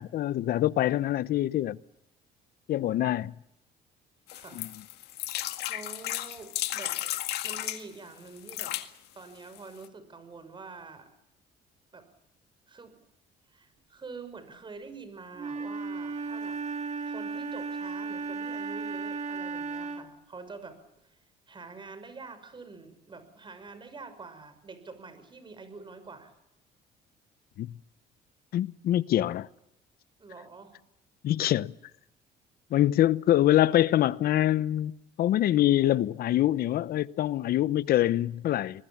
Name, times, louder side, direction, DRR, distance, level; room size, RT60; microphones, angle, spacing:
voice 1, 0.0-1.8 2.7-3.3 4.6-4.7 27.6-27.7 28.5-29.5 31.2-31.7 32.7-34.9 35.2-38.8, left 13 dB, 65° left, 0.9 m, -25 dB
sound 1, 4.3-7.8 8.4-8.9 9.5-9.6 9.8-9.9, left 15 dB, 80° left, 1.8 m, -34 dB
voice 2, 4.3-4.6 5.7-7.0 7.4-8.8 9.1-11.1 11.9-12.1 12.7-13.0 13.5-16.6 17.1-21.2 21.5-26.3 30.2-30.8, right 4 dB, 30° right, 6.0 m, -46 dB
Wind instrument woodwind instrument, 15.3-20.2, right 4 dB, 45° right, 2.5 m, -35 dB
26.0 x 21.0 x 7.3 m
cardioid pair, 110°, 17 cm